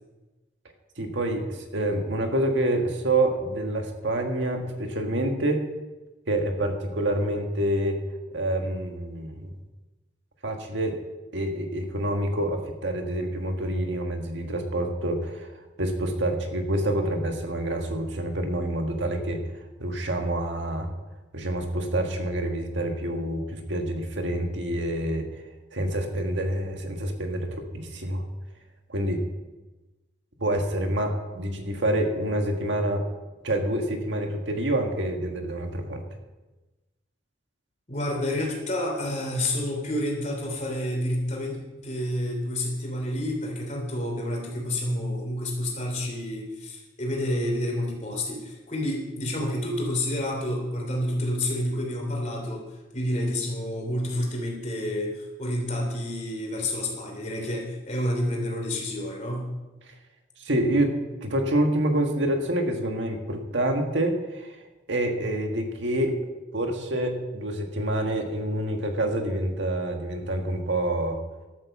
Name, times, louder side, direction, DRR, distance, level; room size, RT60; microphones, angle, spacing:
voice 1, 1.0-5.6 6.3-8.0 8.3-9.5 10.4-11.0 11.3-15.5 15.8-19.4 19.8-20.9 21.3-25.3 25.7-28.2 28.9-29.2 30.4-33.0 33.4-36.0 60.4-64.6 64.9-66.2 66.5-71.2, right 1 dB, 75° right, 4 dB, 1.7 m, -27 dB
voice 2, 37.9-59.5, left 1 dB, 35° left, 0 dB, 3.3 m, -29 dB
12.0 x 7.9 x 7.2 m, 1.1 s
head